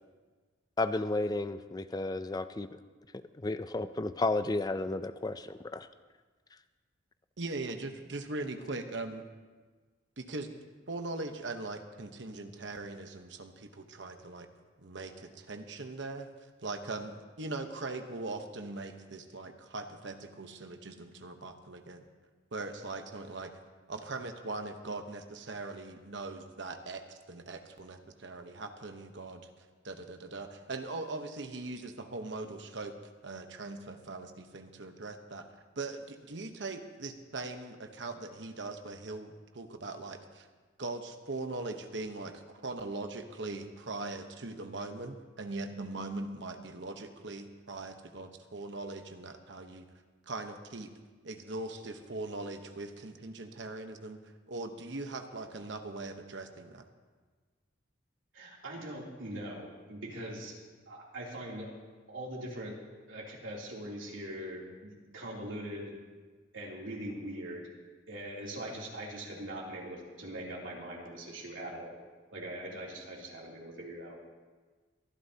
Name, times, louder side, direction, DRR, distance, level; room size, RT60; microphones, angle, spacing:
voice 1, 0.8-2.8 3.4-5.9, left 2 dB, 20° left, 12 dB, 0.4 m, -32 dB
voice 2, 7.4-9.2 10.2-10.5 10.9-14.5 14.8-16.3 16.6-22.0 22.5-23.5 23.9-29.5 29.8-32.9 33.2-40.5 40.8-49.8 50.3-50.9 51.2-54.2 54.5-56.8, right 2 dB, 65° right, 6 dB, 1.0 m, -40 dB
voice 3, 58.3-60.5 60.9-61.7 62.1-62.7 63.1-65.9 66.5-67.7 68.1-72.0 72.3-74.1, right 1 dB, 80° right, -3 dB, 3.0 m, -41 dB
23.0 x 11.5 x 2.8 m, 1.4 s
head